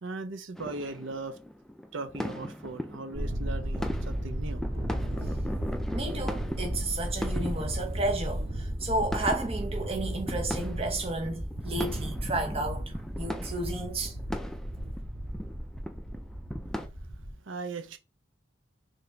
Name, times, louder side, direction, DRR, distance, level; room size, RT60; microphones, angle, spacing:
voice 1, 0.0-1.4 1.9-4.6 16.8-18.0, right 3 dB, 65° right, 0.6 m, -39 dB
sound 1, 0.5-16.9, equal, ahead, 0.4 m, -39 dB
Thunder, 3.1-17.3, equal, 45° right, 1.6 m, -34 dB
voice 2, 5.9-14.1, right 2 dB, 30° right, 1.0 m, -32 dB
3.9 x 3.3 x 3.4 m
head